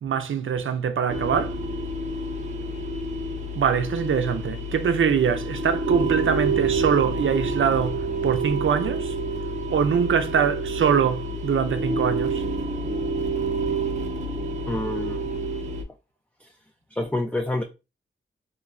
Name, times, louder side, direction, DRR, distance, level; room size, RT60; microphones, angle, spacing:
voice 1, 0.0-1.6 3.6-9.2 9.7-12.4, right 7 dB, 75° right, 0.5 m, -23 dB
sound 1, 1.1-15.8, right 2 dB, 35° right, 0.6 m, -28 dB
voice 2, 14.7-15.2 16.4-16.5 16.9-17.6, left 2 dB, 5° left, 0.3 m, -27 dB
3.0 x 2.6 x 2.5 m
wide cardioid pair, 85°, 21 cm